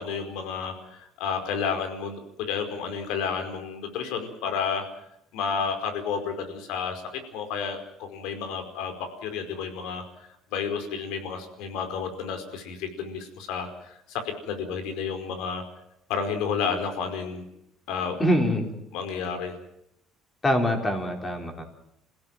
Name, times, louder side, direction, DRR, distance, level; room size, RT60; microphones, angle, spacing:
voice 1, 0.0-4.8 5.3-7.0 7.3-8.9 9.2-15.6 16.1-17.4 17.9-18.2 18.9-19.5, left 6 dB, 80° left, 7 dB, 4.9 m, -31 dB
voice 2, 18.2-18.7 20.4-21.6, equal, 15° left, 3 dB, 4.2 m, -24 dB
27.5 x 16.5 x 7.5 m, 0.76 s
cardioid pair, 150°, 0 cm